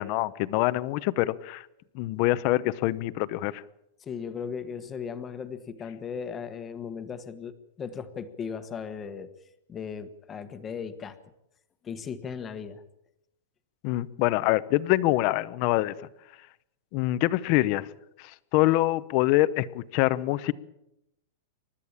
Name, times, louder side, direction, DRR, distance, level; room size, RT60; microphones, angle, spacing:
voice 1, 0.0-1.6 1.9-3.6 13.8-15.9 16.9-17.9 18.2-20.5, left 17 dB, 30° left, 16 dB, 0.8 m, -25 dB
voice 2, 4.0-9.3 9.7-11.2 11.8-12.8, left 6 dB, 15° left, 10 dB, 1.3 m, -37 dB
28.5 x 13.0 x 8.8 m, 0.84 s
supercardioid pair, 175°, 0 cm